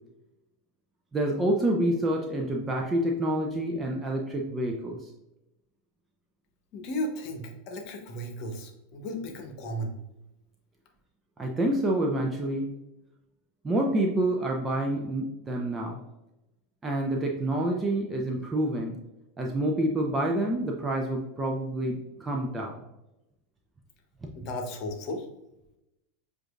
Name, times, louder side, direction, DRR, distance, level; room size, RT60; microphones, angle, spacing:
voice 1, 1.1-5.0 11.4-12.7 13.6-16.0 16.8-19.0 19.4-22.8, right 1 dB, 20° right, 1 dB, 0.7 m, -28 dB
voice 2, 6.7-9.9 24.4-25.3, equal, 50° left, 4 dB, 1.0 m, -35 dB
7.6 x 2.7 x 2.4 m, 0.91 s
hypercardioid pair, 85°, 0 cm